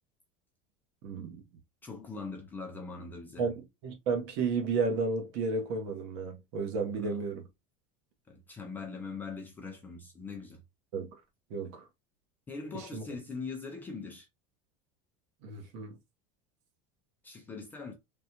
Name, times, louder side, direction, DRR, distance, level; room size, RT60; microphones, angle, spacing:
voice 1, 1.0-1.4 3.4-7.5 10.9-11.2 11.5-11.8 12.7-13.0 15.4-16.0, right 4 dB, 50° right, 1.0 m, -33 dB
voice 2, 1.8-3.5 6.9-7.2 8.3-10.6 12.5-14.3 17.2-17.9, left 4 dB, 10° left, 0.3 m, -41 dB
3.4 x 2.2 x 2.8 m
supercardioid pair, 175°, 18 cm